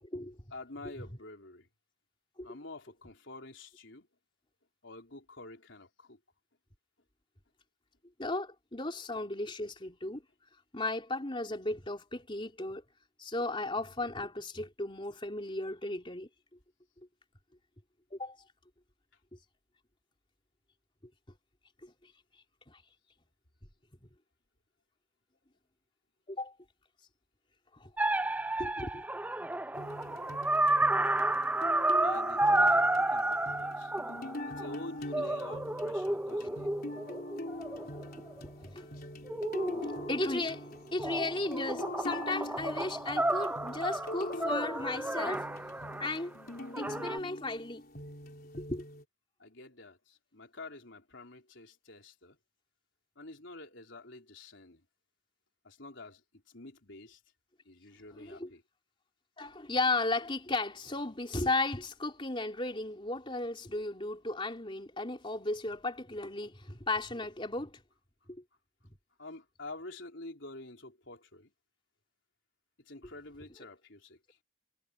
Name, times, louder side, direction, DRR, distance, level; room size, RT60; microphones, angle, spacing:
voice 1, 0.5-1.7 2.4-4.1 4.8-6.2 32.0-33.9 34.5-36.7 49.4-52.4 53.2-54.8 55.6-56.2 56.5-57.2 57.6-58.6 69.2-71.5 72.9-74.4, left 2 dB, 60° left, 4.3 m, -48 dB
voice 2, 8.2-10.2 10.7-12.8 13.2-16.3 18.1-18.4 21.8-21.9 22.7-22.8 26.3-26.5 27.7-27.9 28.6-29.0 38.6-38.9 40.1-40.7 40.9-45.5 46.0-46.3 46.8-47.8 48.6-48.8 58.1-58.5 59.4-67.8 68.3-68.4, left 2 dB, 25° left, 3.6 m, -35 dB
sound 1, 28.0-34.7 35.1-38.4 39.3-40.6 41.0-46.1 46.7-47.2, right 1 dB, 10° right, 0.5 m, -31 dB
sound 2, 29.7-49.0, left 1 dB, 45° left, 4.2 m, -43 dB
head